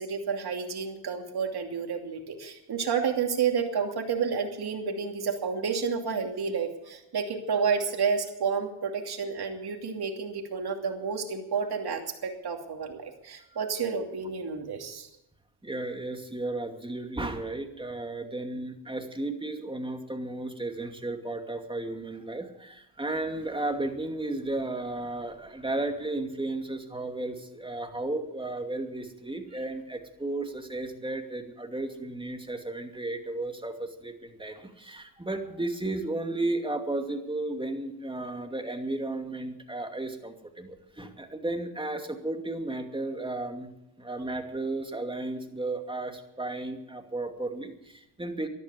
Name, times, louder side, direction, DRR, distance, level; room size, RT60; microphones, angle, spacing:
voice 1, 0.0-15.1, right 6 dB, 55° right, 3 dB, 2.8 m, -30 dB
voice 2, 15.6-43.7 44.0-48.5, right 2 dB, 10° right, 5 dB, 2.5 m, -34 dB
13.5 x 11.5 x 8.3 m, 0.85 s
supercardioid pair, 65°, 46 cm